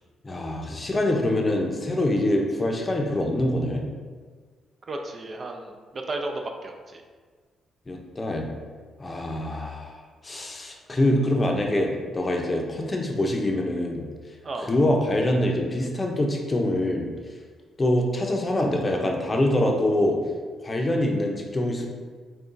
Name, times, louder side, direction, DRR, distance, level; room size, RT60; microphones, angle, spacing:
voice 1, 0.2-3.8 7.9-8.5 9.0-14.0 14.7-17.1 17.8-20.2 20.6-21.9, left 1 dB, 25° left, 1 dB, 0.6 m, -24 dB
voice 2, 4.9-7.0 14.4-14.7, right 2 dB, 40° right, 3 dB, 0.4 m, -34 dB
6.6 x 2.3 x 2.6 m, 1.5 s
cardioid pair, 80°, 0 cm